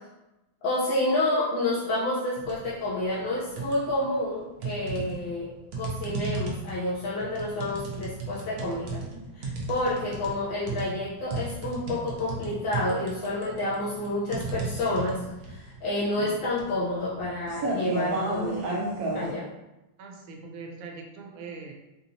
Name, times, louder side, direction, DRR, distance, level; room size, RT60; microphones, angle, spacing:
voice 1, 0.6-5.5 5.7-9.0 9.3-18.8 19.1-19.4, left 1 dB, 80° left, -8 dB, 1.5 m, -29 dB
sound 1, 2.4-2.7 3.1-4.1 4.6-19.3, right 2 dB, 60° right, 1.0 m, -33 dB
voice 2, 20.0-21.7, right 4 dB, 85° right, 2 dB, 1.4 m, -41 dB
4.3 x 2.8 x 2.7 m, 0.99 s
omnidirectional pair, 2.1 m